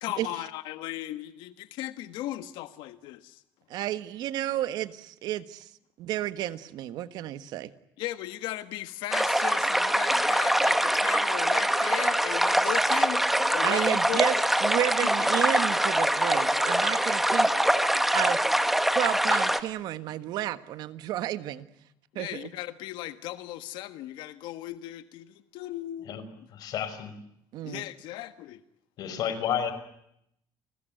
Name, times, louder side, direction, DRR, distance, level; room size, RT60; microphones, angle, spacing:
voice 1, 0.0-3.4 8.0-13.2 13.5-14.2 22.1-26.1 27.6-28.6, left 15 dB, 90° left, 11 dB, 1.5 m, -37 dB
voice 2, 3.7-5.7 6.0-7.7 13.6-18.4 18.9-21.7 22.1-22.5 27.5-27.8, right 13 dB, 65° right, 13 dB, 1.5 m, -32 dB
sound 1, 9.1-19.6, right 1 dB, 5° right, 1.4 m, -24 dB
voice 3, 26.5-27.1 29.0-29.7, left 9 dB, 55° left, 11 dB, 5.2 m, -30 dB
30.0 x 21.0 x 9.2 m, 0.77 s
cardioid pair, 170°, 8 cm